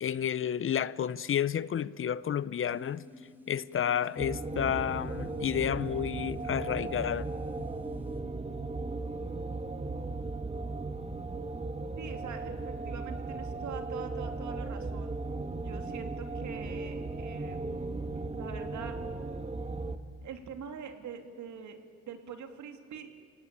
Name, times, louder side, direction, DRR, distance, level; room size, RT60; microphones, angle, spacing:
voice 1, 0.0-3.0 3.5-7.3, left 9 dB, 45° left, 0.6 m, -31 dB
sound 1, 2.7-8.2, left 2 dB, 5° right, 2.6 m, -52 dB
sound 2, 4.2-20.0, right 3 dB, 20° right, 1.5 m, -36 dB
voice 2, 12.0-15.1 15.6-17.6 18.1-19.0 20.2-23.1, right 7 dB, 70° right, 2.8 m, -44 dB
28.0 x 18.5 x 8.8 m
cardioid pair, 90°, 30 cm